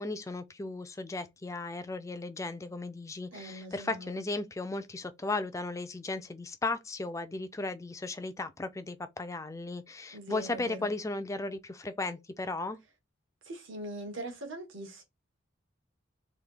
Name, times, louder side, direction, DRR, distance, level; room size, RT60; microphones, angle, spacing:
voice 1, 0.0-12.8, left 2 dB, 15° left, 0.4 m, -36 dB
voice 2, 3.3-4.2 10.1-10.9 13.4-15.0, right 1 dB, 80° right, 1.2 m, -42 dB
3.3 x 2.6 x 3.8 m
head